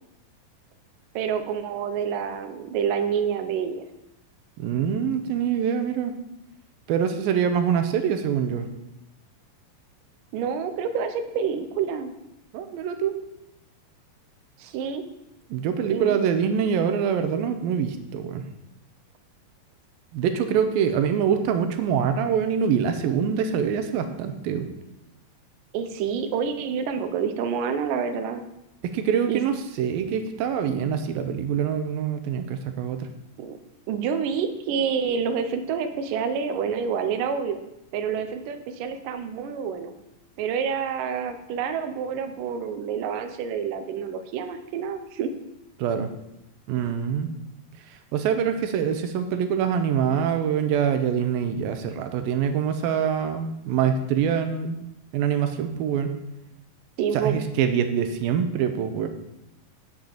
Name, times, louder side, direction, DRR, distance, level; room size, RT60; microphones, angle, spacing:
voice 1, 1.2-3.8 10.3-12.1 14.6-15.0 15.9-16.2 25.7-28.4 29.3-29.4 33.4-33.6 33.9-37.6 37.9-39.9 40.4-45.3 57.0-57.4, right 7 dB, 75° right, 7 dB, 2.4 m, -28 dB
voice 2, 4.6-6.1 6.9-8.7 12.5-13.2 15.5-18.4 20.1-24.7 28.9-33.1 45.8-46.1 46.7-47.3 48.1-54.8 55.1-56.1 57.1-59.1, right 7 dB, 90° right, 8 dB, 2.7 m, -24 dB
8.6 x 6.5 x 7.3 m, 0.87 s
omnidirectional pair, 4.1 m